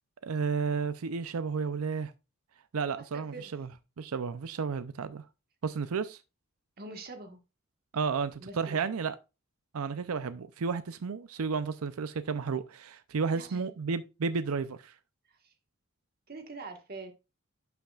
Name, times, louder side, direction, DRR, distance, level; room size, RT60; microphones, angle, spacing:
voice 1, 0.2-2.1 2.7-3.7 4.0-5.2 5.6-6.2 7.9-9.1 9.7-14.9, right 5 dB, 90° right, 0.5 m, -32 dB
voice 2, 3.1-3.5 6.8-7.4 8.4-8.9 13.3-13.7 15.3-15.5 16.3-17.1, right 3 dB, 45° right, 1.5 m, -44 dB
11.5 x 5.9 x 2.4 m
head